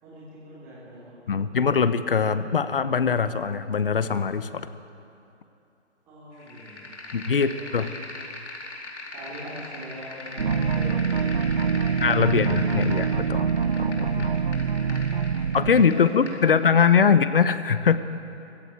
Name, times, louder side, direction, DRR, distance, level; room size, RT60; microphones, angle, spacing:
voice 1, 0.0-1.8 6.1-7.9 9.1-12.6 14.5-17.2, right 1 dB, 10° right, -13 dB, 3.1 m, -43 dB
voice 2, 1.3-4.7 7.1-7.9 12.0-14.3 15.5-18.0, left 6 dB, 50° left, 13 dB, 0.9 m, -22 dB
sound 1, 6.4-16.4, left 2 dB, 85° left, 4.4 m, -40 dB
sound 2, 10.4-15.9, right 6 dB, 50° right, 0.7 m, -25 dB
20.0 x 16.0 x 9.2 m, 2.8 s
hypercardioid pair, 175°, 35 cm